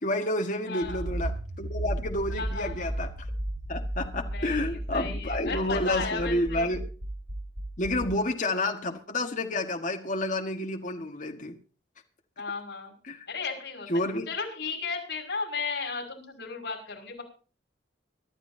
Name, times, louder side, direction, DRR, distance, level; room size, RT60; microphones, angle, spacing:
voice 1, 0.0-1.3 1.6-3.1 3.7-6.8 7.8-11.6 13.0-13.3 13.9-14.3, left 1 dB, 45° left, 3 dB, 1.7 m, -30 dB
voice 2, 0.6-1.0 2.4-2.9 4.3-4.6 4.9-6.7 12.4-12.9 13.3-13.9 14.3-17.2, left 4 dB, 60° left, 0 dB, 5.8 m, -34 dB
Accelerating revving vroom, 0.8-8.1, right 1 dB, 60° right, 3.9 m, -34 dB
24.5 x 12.5 x 2.8 m, 0.37 s
head